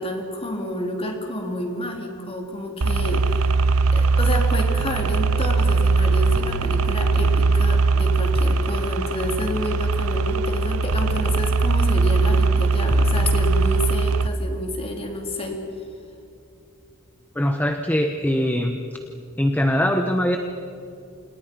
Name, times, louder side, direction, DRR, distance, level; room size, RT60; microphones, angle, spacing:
voice 1, 0.0-3.5 3.9-15.6, left 1 dB, 25° left, 2 dB, 3.5 m, -29 dB
sound 1, 2.8-14.3, right 3 dB, 80° right, 0.9 m, -20 dB
voice 2, 17.4-18.8 19.4-20.4, equal, 10° left, 5 dB, 1.0 m, -21 dB
29.5 x 28.0 x 5.4 m, 2.6 s
head